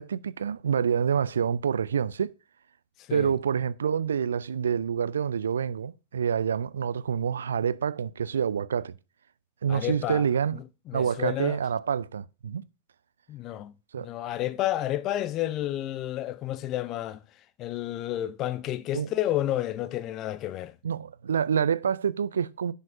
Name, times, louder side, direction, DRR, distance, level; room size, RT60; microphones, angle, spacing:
voice 1, 0.0-2.3 3.1-8.9 9.6-10.6 10.9-12.6 13.9-14.1 18.9-19.1 20.8-22.7, right 7 dB, 70° right, 0.3 m, -27 dB
voice 2, 9.7-10.3 10.5-11.6 13.3-13.7 14.0-17.2 17.6-20.7, left 13 dB, 35° left, 0.5 m, -31 dB
10.5 x 5.2 x 2.5 m
figure-of-eight pair, 90°, 0 cm